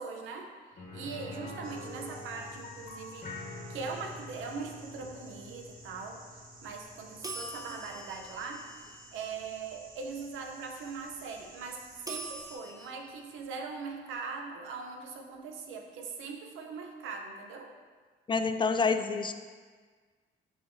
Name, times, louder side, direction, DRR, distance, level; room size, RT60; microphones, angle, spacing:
voice 1, 0.0-3.3 3.7-6.2 6.6-8.7 9.1-17.7, right 4 dB, 85° right, 3 dB, 0.7 m, -41 dB
sound 1, 0.8-10.5 10.8-10.9 13.4-13.5, left 2 dB, 50° left, 1.4 m, -47 dB
sound 2, 1.6-12.6, right 2 dB, 45° right, 1.3 m, -54 dB
sound 3, 7.2-9.5 12.1-12.9, right 2 dB, 15° right, 0.7 m, -43 dB
voice 2, 18.3-19.3, left 4 dB, 25° left, 8 dB, 0.4 m, -27 dB
6.8 x 5.2 x 2.7 m, 1.5 s
cardioid pair, 90°, 20 cm